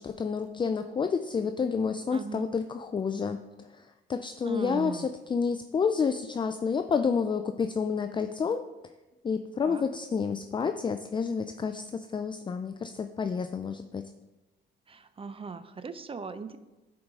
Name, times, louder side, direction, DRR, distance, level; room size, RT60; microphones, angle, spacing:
voice 1, 0.0-3.4 3.7-5.0 5.3-8.6 9.2-14.1, left 5 dB, 25° left, 8 dB, 0.3 m, -29 dB
voice 2, 2.1-2.5 4.4-5.1 9.6-9.8 14.9-16.6, right 5 dB, 30° right, 11 dB, 0.5 m, -39 dB
10.5 x 4.7 x 3.7 m, 1.1 s
cardioid pair, 90°, 20 cm